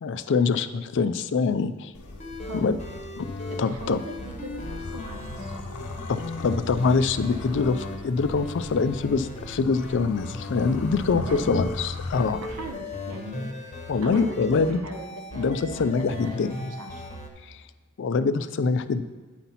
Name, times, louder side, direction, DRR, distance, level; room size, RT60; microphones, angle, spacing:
voice 1, 0.0-1.9 2.5-2.8 3.2-3.3 3.6-4.0 6.1-12.4 13.9-14.8 15.3-16.7 17.4-17.6 18.0-19.0, left 4 dB, 55° left, 12 dB, 0.4 m, -24 dB
sound 1, 1.9-12.8, left 2 dB, 75° left, 0.7 m, -38 dB
sound 2, 2.1-11.8 12.1-17.3, left 1 dB, 30° left, 0.9 m, -37 dB
voice 2, 2.4-2.7 3.5-5.5 11.1-11.4 12.4-17.0, right 1 dB, 85° right, 4 dB, 1.1 m, -40 dB
9.2 x 4.0 x 5.7 m, 1.3 s
head